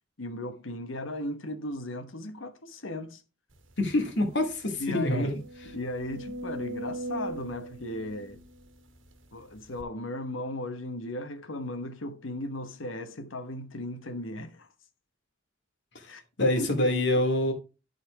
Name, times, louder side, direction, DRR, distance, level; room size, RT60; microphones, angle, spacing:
voice 1, 0.2-3.2 4.8-5.4 5.7-8.4 9.3-14.7 16.1-16.2 16.6-16.7, left 1 dB, 85° left, 1.2 m, -36 dB
voice 2, 3.8-5.4 15.9-16.1 16.4-17.5, left 1 dB, 60° left, 2.4 m, -26 dB
sound 1, 3.8-3.9 4.3-4.4 4.9-9.1 9.8-9.9, right 1 dB, 85° right, 1.5 m, -40 dB
12.0 x 4.2 x 4.8 m
head